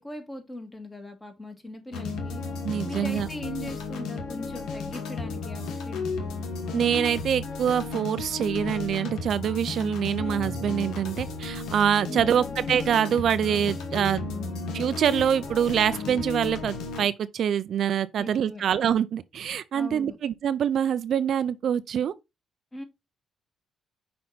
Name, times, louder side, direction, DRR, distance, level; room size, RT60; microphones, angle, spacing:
voice 1, 0.0-2.4 2.9-6.2 12.1-12.6 18.2-18.6 19.7-20.2 22.7-22.8, left 1 dB, 20° left, 1.9 m, -39 dB
sound 1, 1.9-17.1, left 4 dB, 85° left, 1.2 m, -34 dB
voice 2, 2.6-3.3 6.7-14.3 14.7-22.1, right 9 dB, 65° right, 0.4 m, -25 dB
sound 2, 13.5-16.4, right 1 dB, ahead, 2.0 m, -47 dB
5.6 x 4.3 x 4.0 m
cardioid pair, 90°, 0 cm